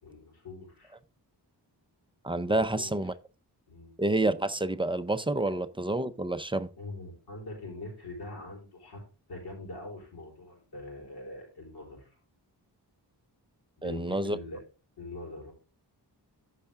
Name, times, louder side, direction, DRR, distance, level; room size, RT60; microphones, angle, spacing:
voice 1, 0.0-0.9 2.4-2.9 3.7-3.9 6.8-9.0 9.3-12.1 13.8-14.6 15.0-15.5, left 2 dB, 65° left, 4.4 m, -43 dB
voice 2, 2.2-3.1 4.0-6.7 13.8-14.4, right 2 dB, 15° right, 0.4 m, -28 dB
14.0 x 5.7 x 3.5 m
wide cardioid pair, 175°, 42 cm